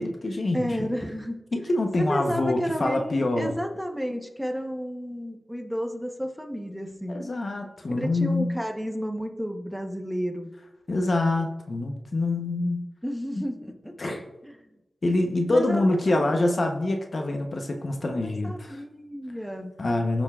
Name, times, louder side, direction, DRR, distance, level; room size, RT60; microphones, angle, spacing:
voice 1, 0.0-0.9 1.5-3.5 7.1-8.6 10.9-12.9 14.0-14.2 15.0-18.8 19.8-20.2, left 2 dB, 55° left, 3 dB, 0.9 m, -25 dB
voice 2, 0.5-1.4 2.1-7.2 8.0-10.5 13.0-13.9 14.4-14.6 15.5-16.2 18.2-19.7, equal, 5° right, 3 dB, 1.0 m, -32 dB
14.0 x 5.3 x 2.4 m, 0.98 s
wide cardioid pair, 70°, 0 cm